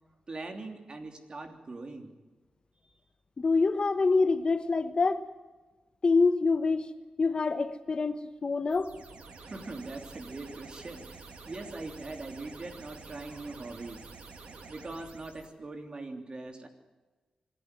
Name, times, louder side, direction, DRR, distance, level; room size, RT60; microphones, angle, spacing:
voice 1, 0.3-2.1 2.8-2.9 9.4-14.1 14.7-16.7, right 2 dB, 45° right, 3.3 m, -41 dB
voice 2, 3.4-5.2 6.0-6.9 7.2-8.9, left 4 dB, 45° left, 1.1 m, -26 dB
sound 1, 8.7-15.5, right 4 dB, 80° right, 3.1 m, -48 dB
25.5 x 11.5 x 9.7 m
cardioid pair, 75°, 2 cm